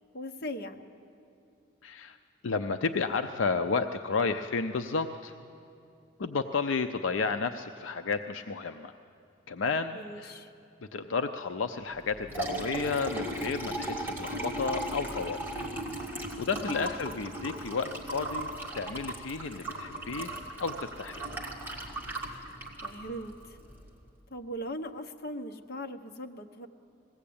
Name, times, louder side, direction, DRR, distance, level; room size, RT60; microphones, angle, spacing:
voice 1, 0.1-0.9 9.9-10.5 16.6-16.9 22.8-23.6 24.3-26.7, equal, 50° left, 5 dB, 1.0 m, -39 dB
voice 2, 1.8-2.2 2.4-5.4 6.2-9.0 9.5-10.3 10.9-15.6 16.4-20.3 20.6-21.3, left 4 dB, 75° left, 7 dB, 0.6 m, -32 dB
Liquid, 12.0-23.9, right 1 dB, 10° right, 2.1 m, -37 dB
20.0 x 16.5 x 8.6 m, 2.6 s
head